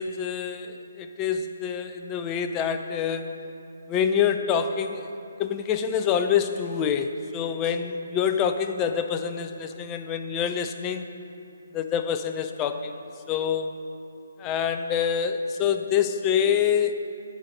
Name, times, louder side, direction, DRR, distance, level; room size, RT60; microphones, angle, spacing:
voice 1, 0.0-3.3 3.9-5.1 5.4-11.1 11.7-13.0 13.3-13.8 14.4-16.9, left 8 dB, 20° left, 8 dB, 0.3 m, -26 dB
9.1 x 3.9 x 6.4 m, 2.6 s
figure-of-eight pair, 140°, 0 cm